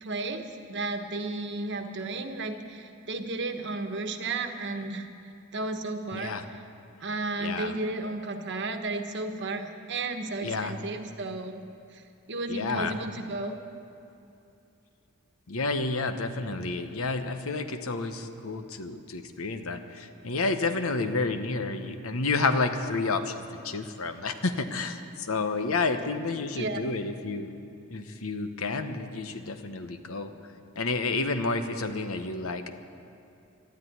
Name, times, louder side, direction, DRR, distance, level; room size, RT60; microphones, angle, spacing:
voice 1, 0.0-5.1 5.5-6.4 7.0-11.6 11.9-12.0 12.3-13.6 26.5-26.8, right 2 dB, 55° right, 6 dB, 1.2 m, -33 dB
voice 2, 6.1-6.5 7.4-7.7 10.4-10.8 12.5-13.0 15.5-27.5 27.9-30.3 30.7-32.7, left 3 dB, 80° left, 8 dB, 1.0 m, -30 dB
12.5 x 12.0 x 9.4 m, 2.7 s
head